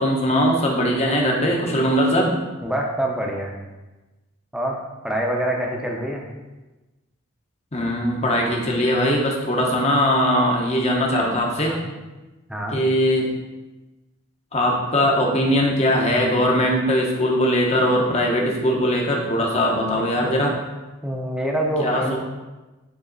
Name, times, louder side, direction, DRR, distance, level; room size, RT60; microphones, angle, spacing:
voice 1, 0.0-2.4 7.7-11.8 12.7-13.3 14.5-20.5 21.8-22.2, equal, 30° left, 0 dB, 1.1 m, -20 dB
voice 2, 2.6-3.5 4.5-4.8 5.0-6.3 11.7-11.9 12.5-12.8 19.9-20.6 21.0-22.2, right 1 dB, 5° right, -1 dB, 0.8 m, -26 dB
9.9 x 3.4 x 4.0 m, 1.1 s
head